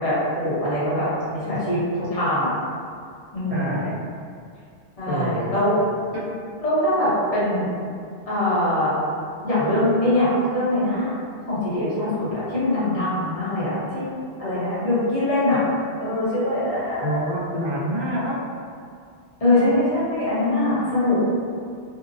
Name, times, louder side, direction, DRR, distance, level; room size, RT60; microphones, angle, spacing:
voice 1, 0.0-2.5 3.3-3.8 5.0-5.7 6.6-7.7 8.3-8.9 9.4-11.1 11.5-14.0 14.4-15.6 16.0-17.2 19.4-21.2, left 1 dB, 35° left, -11 dB, 0.9 m, -22 dB
voice 2, 3.5-4.0 5.0-5.5 6.1-6.2 17.0-18.4, right 1 dB, 35° right, -10 dB, 0.7 m, -27 dB
2.7 x 2.0 x 2.5 m, 2.3 s
omnidirectional pair, 1.1 m